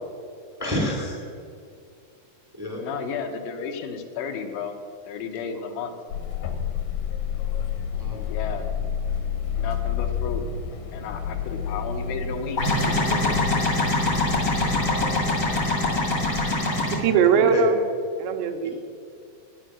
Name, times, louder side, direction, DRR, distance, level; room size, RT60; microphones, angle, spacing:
voice 1, 0.6-1.3 2.6-2.8 5.5-5.6 7.9-8.3 15.0-15.2 17.3-17.7, left 1 dB, 15° right, -1 dB, 0.7 m, -30 dB
voice 2, 2.8-4.8 5.1-6.0 8.3-8.7 9.6-10.5 10.9-12.6 12.9-13.4, left 6 dB, 90° left, 5 dB, 3.4 m, -33 dB
sound 1, 6.1-16.5, left 7 dB, 70° left, 2.1 m, -30 dB
sound 2, 12.6-16.9, left 1 dB, 55° left, 1.0 m, -24 dB
voice 3, 16.7-17.8 18.2-18.7, right 6 dB, 80° right, 5 dB, 2.9 m, -21 dB
11.0 x 10.0 x 6.2 m, 2.4 s
omnidirectional pair, 5.0 m